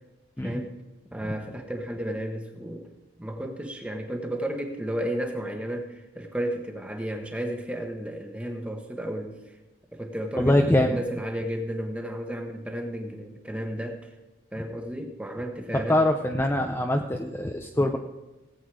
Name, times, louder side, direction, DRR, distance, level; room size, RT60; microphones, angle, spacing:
voice 1, 0.4-0.8 1.1-2.9 3.2-9.4 9.9-14.1 14.5-16.0, right 1 dB, 5° right, 4 dB, 1.3 m, -33 dB
voice 2, 10.4-11.0 15.9-18.0, left 1 dB, 10° left, 3 dB, 0.6 m, -23 dB
18.0 x 8.4 x 4.7 m, 1.0 s
head